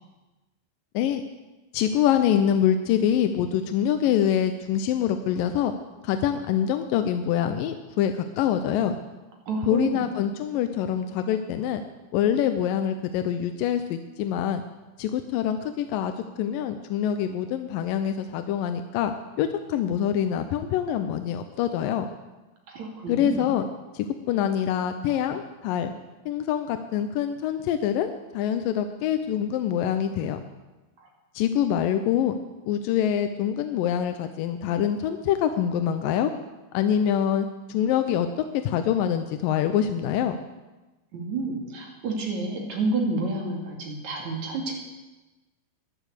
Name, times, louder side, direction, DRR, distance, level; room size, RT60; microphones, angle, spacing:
voice 1, 1.7-5.7 6.0-9.0 9.7-11.8 12.1-14.6 15.0-16.1 16.4-22.1 23.1-23.7 23.9-25.9 26.3-30.4 31.4-32.3 32.6-36.3 36.7-38.3 38.6-40.4, left 9 dB, 75° left, 8 dB, 2.2 m, -25 dB
voice 2, 9.5-10.0 22.7-23.5 31.0-31.1 41.1-44.7, right 3 dB, 50° right, 1 dB, 3.6 m, -29 dB
13.5 x 11.0 x 8.3 m, 1.1 s
omnidirectional pair, 4.5 m